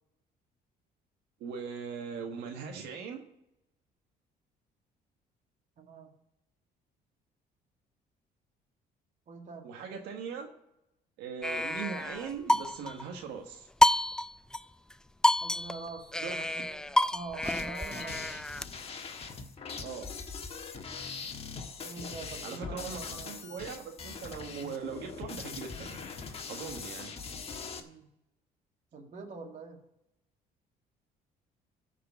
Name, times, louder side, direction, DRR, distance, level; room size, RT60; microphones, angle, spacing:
voice 1, 1.4-3.2 9.6-10.5 11.2-13.7 16.2-16.5 19.8-20.2 22.4-26.0 26.5-27.1, right 6 dB, 85° right, 3 dB, 1.5 m, -40 dB
voice 2, 5.8-6.1 9.3-9.7 15.4-18.4 21.8-23.5 27.8-28.1 28.9-29.8, right 4 dB, 45° right, 3 dB, 2.2 m, -45 dB
sound 1, 11.4-13.1 13.8-14.6 14.9-15.0 15.2-18.6, left 1 dB, 5° left, 0.3 m, -28 dB
sound 2, 17.4-27.8, left 5 dB, 35° left, 1.4 m, -42 dB
14.0 x 5.0 x 6.9 m, 0.85 s
cardioid pair, 110°, 17 cm